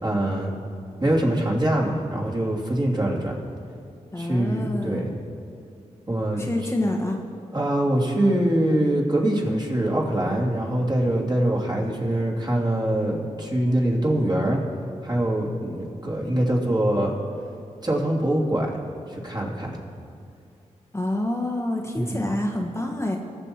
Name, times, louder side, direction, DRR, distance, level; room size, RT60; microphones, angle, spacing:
voice 1, 0.0-0.5 1.0-3.4 4.2-5.1 6.1-6.4 7.5-14.6 15.0-17.1 17.8-18.7 19.1-19.7 21.9-22.2, right 1 dB, 30° right, -2 dB, 2.7 m, -23 dB
voice 2, 4.1-5.1 6.4-7.2 20.9-23.2, left 1 dB, 20° left, 1 dB, 1.2 m, -27 dB
19.5 x 7.1 x 4.4 m, 2.4 s
cardioid pair, 55°, 13 cm